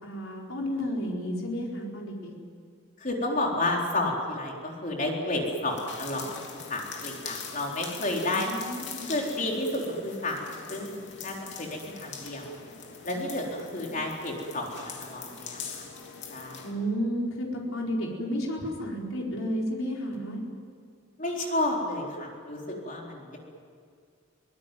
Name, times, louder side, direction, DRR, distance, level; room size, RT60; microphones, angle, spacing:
voice 1, 0.0-2.3 8.2-9.2 13.9-14.0 16.6-20.4, equal, 75° left, -1 dB, 4.5 m, -32 dB
voice 2, 3.0-6.3 6.7-8.5 9.0-12.6 13.0-15.8 16.3-16.6 21.2-23.4, left 2 dB, 40° left, -1 dB, 4.1 m, -31 dB
sound 1, 5.7-16.7, left 6 dB, 60° left, 3.2 m, -42 dB
24.0 x 19.5 x 9.3 m, 2.2 s
head